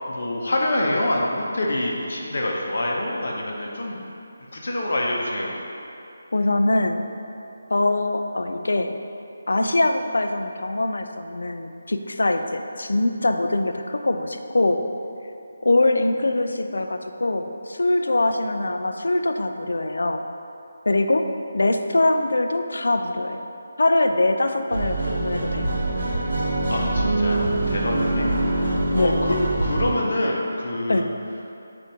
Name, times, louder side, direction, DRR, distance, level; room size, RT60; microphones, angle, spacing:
voice 1, 0.1-4.0 4.5-5.6 26.4-31.1, left 1 dB, 60° left, -1 dB, 0.7 m, -26 dB
voice 2, 6.3-7.1 7.7-9.0 9.5-14.8 15.6-20.3 20.9-23.4 23.8-25.7 28.9-29.2 30.9-31.1, left 2 dB, 80° left, 6 dB, 0.3 m, -23 dB
sound 1, 24.7-29.9, right 2 dB, 60° right, 0.8 m, -24 dB
6.9 x 2.6 x 2.8 m, 2.7 s
figure-of-eight pair, 170°, 0 cm